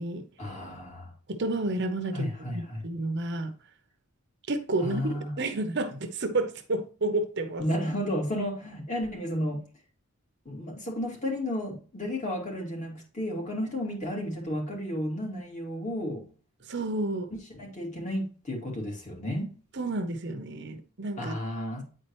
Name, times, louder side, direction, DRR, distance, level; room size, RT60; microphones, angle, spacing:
voice 1, 0.4-1.1 2.1-2.8 4.8-5.4 7.6-9.6 10.5-16.3 17.6-19.5 21.2-21.8, left 1 dB, 35° left, 2.5 m, -32 dB
voice 2, 1.3-3.5 4.5-7.6 16.7-17.3 19.7-21.4, right 2 dB, 50° right, 0.8 m, -30 dB
9.5 x 4.3 x 3.1 m
head